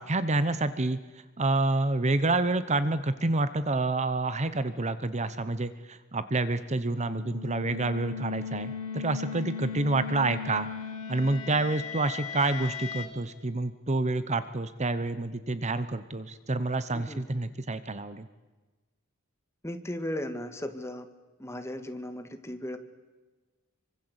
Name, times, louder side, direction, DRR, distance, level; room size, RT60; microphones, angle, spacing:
voice 1, 0.0-10.7 11.1-18.3, right 2 dB, 35° right, 13 dB, 1.0 m, -28 dB
sound 1, 6.8-13.1, left 6 dB, 80° left, 4.1 m, -38 dB
voice 2, 19.6-21.1 21.4-22.8, left 1 dB, 15° left, 8 dB, 1.9 m, -36 dB
27.0 x 24.5 x 8.1 m, 1.2 s
head